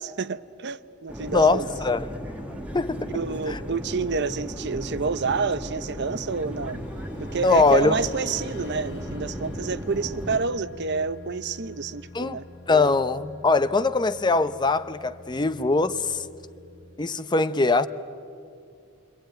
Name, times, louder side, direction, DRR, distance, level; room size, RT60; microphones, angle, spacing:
voice 1, 0.0-1.7 3.1-6.9 7.2-12.4, right 4 dB, 55° right, 0.7 m, -29 dB
sound 1, 1.1-10.4, equal, 5° right, 1.8 m, -36 dB
voice 2, 1.3-2.1 2.7-3.1 3.5-3.6 7.4-8.0 12.1-12.4 12.7-16.2 17.0-17.9, left 3 dB, 20° left, 0.6 m, -22 dB
sound 2, 6.4-17.0, left 3 dB, 60° left, 1.9 m, -46 dB
27.5 x 24.0 x 9.1 m
head